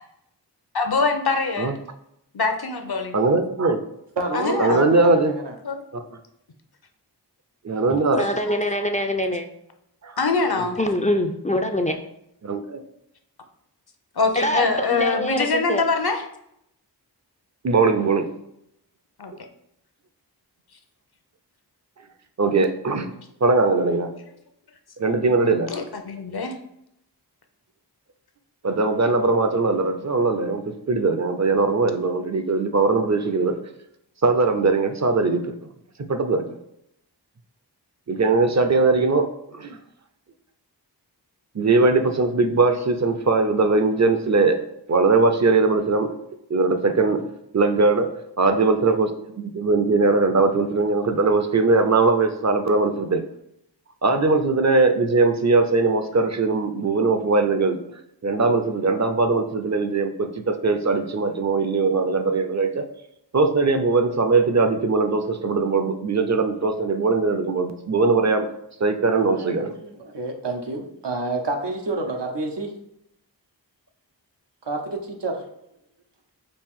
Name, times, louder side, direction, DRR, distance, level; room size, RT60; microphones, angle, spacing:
voice 1, 0.7-1.7 2.3-3.2 4.3-4.9 5.6-5.8 8.1-8.3 10.2-10.8 14.2-16.2 19.2-19.3 25.7-26.5, left 4 dB, 65° left, 6 dB, 0.7 m, -23 dB
voice 2, 3.1-3.8 4.6-5.4 5.9-6.0 7.7-8.2 10.0-10.2 12.5-12.6 17.6-18.3 22.4-23.1 23.4-24.1 25.0-25.7 28.6-33.6 34.2-35.5 36.1-36.4 38.1-39.8 41.5-44.6 44.9-46.1 46.5-47.2 47.5-48.1 48.4-53.2 54.0-57.8 58.2-62.9 63.3-68.5 68.8-69.8, right 3 dB, 40° right, 7 dB, 0.5 m, -20 dB
voice 3, 4.2-5.5 69.3-72.7 74.6-75.4, right 2 dB, 85° right, 2 dB, 0.8 m, -29 dB
voice 4, 8.1-9.5 10.8-11.9 14.4-15.8, left 1 dB, 20° left, 4 dB, 0.3 m, -24 dB
5.2 x 2.5 x 3.6 m, 0.78 s
wide cardioid pair, 50°, 41 cm